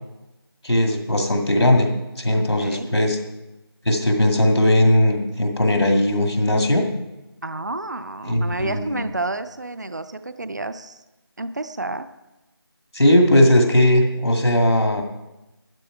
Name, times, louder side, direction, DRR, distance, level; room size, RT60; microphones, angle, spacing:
voice 1, 0.6-1.9 2.2-3.2 3.9-6.8 8.2-9.0 12.9-15.0, left 1 dB, 80° left, 3 dB, 2.0 m, -18 dB
voice 2, 2.3-2.9 7.4-11.0 11.4-12.1, right 2 dB, 45° right, 12 dB, 0.4 m, -30 dB
12.0 x 10.0 x 4.6 m, 1.0 s
figure-of-eight pair, 175°, 13 cm